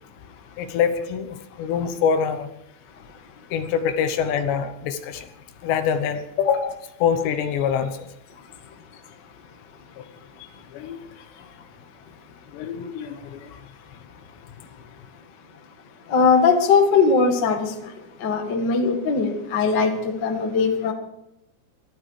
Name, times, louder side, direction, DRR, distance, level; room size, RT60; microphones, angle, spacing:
voice 1, 0.6-2.5 3.5-5.3 5.6-8.1 10.0-10.1 10.7-11.0 12.5-13.5, left 7 dB, 75° left, 9 dB, 3.0 m, -25 dB
voice 2, 16.1-17.7 18.2-20.9, left 5 dB, 60° left, 4 dB, 1.1 m, -20 dB
21.5 x 13.5 x 4.9 m, 0.83 s
omnidirectional pair, 5.3 m